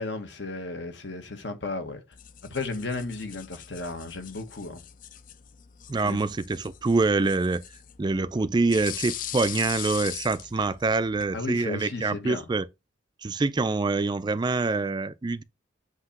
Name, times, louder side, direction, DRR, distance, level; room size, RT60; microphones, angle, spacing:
voice 1, 0.0-2.0 2.5-4.8 6.0-6.2 11.3-12.4, left 3 dB, 65° left, 1.3 m, -34 dB
sound 1, 2.1-11.3, left 11 dB, 45° left, 0.4 m, -41 dB
voice 2, 5.9-7.6 8.0-12.6 13.2-15.4, right 3 dB, 25° right, 0.3 m, -25 dB
7.9 x 2.9 x 5.7 m
head